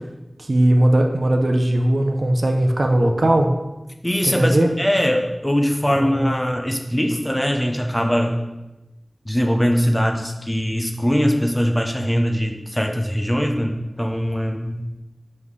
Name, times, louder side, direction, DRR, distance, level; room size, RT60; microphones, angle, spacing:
voice 1, 0.4-3.5 4.3-4.7 5.9-6.3, right 1 dB, 60° right, 2 dB, 0.6 m, -18 dB
voice 2, 4.0-8.3 9.2-14.8, equal, 10° left, 3 dB, 0.6 m, -21 dB
5.5 x 5.4 x 3.2 m, 1.0 s
wide cardioid pair, 65°, 0 cm